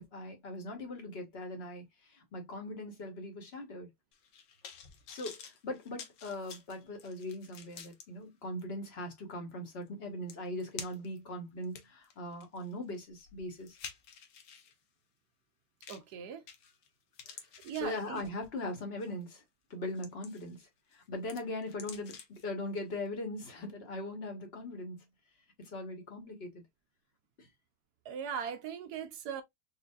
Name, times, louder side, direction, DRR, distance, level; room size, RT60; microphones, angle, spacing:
voice 1, 0.0-3.9 5.1-13.8 17.3-17.4 17.8-19.4 19.7-25.0 25.6-26.6 27.4-27.5, left 1 dB, 40° left, 1.2 m, -40 dB
sound 1, 4.1-8.0 8.6-8.7 9.9-10.0 10.3-11.2 11.6-14.7 15.8-16.1 16.5-16.9 17.1-18.5 19.0-19.2 19.7-20.6 20.9-22.4 22.8-22.9, left 7 dB, 75° left, 1.4 m, -50 dB
voice 2, 15.9-16.4 17.6-18.2 28.1-29.4, right 8 dB, 70° right, 1.1 m, -39 dB
4.8 x 2.5 x 2.3 m
omnidirectional pair, 2.0 m